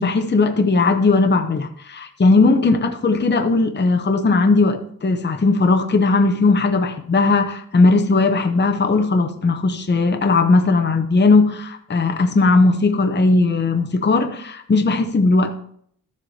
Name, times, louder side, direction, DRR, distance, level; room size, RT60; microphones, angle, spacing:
voice 1, 0.0-15.5, left 3 dB, 30° left, 0.7 m, -17 dB
13.0 x 7.4 x 2.8 m
wide cardioid pair, 100°, 35 cm